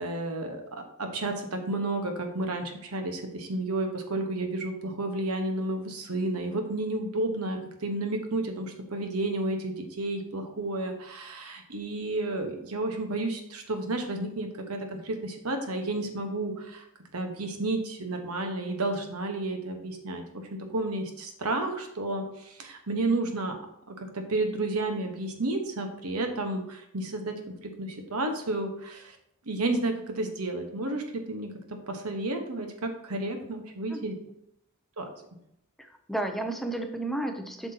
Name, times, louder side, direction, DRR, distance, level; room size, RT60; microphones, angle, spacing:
voice 1, 0.0-16.8 17.1-20.2 20.5-23.6 23.9-29.2 29.4-34.1 35.0-35.1, right 2 dB, 90° right, 5 dB, 1.2 m, -31 dB
voice 2, 35.8-37.7, right 1 dB, ahead, 5 dB, 0.5 m, -32 dB
7.8 x 6.1 x 2.8 m, 0.78 s
head